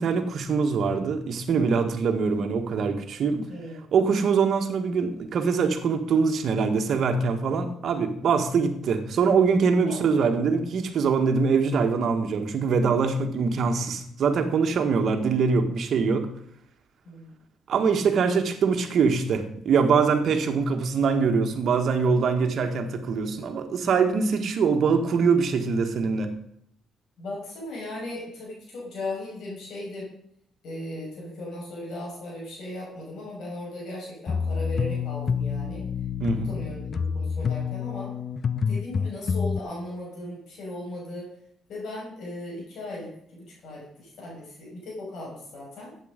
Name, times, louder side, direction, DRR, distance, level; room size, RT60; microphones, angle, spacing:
voice 1, 0.0-3.5 3.9-16.3 17.7-26.3 36.2-36.5, right 5 dB, 60° right, 6 dB, 1.7 m, -23 dB
voice 2, 3.5-3.8 9.8-10.2 17.0-17.4 27.2-30.1 30.6-35.8 36.4-38.1 38.7-41.3 41.7-45.9, left 1 dB, 70° left, -4 dB, 6.0 m, -37 dB
sound 1, 34.3-39.6, left 6 dB, 50° left, 0.6 m, -28 dB
11.5 x 8.8 x 5.2 m, 0.70 s
cardioid pair, 90°, 0 cm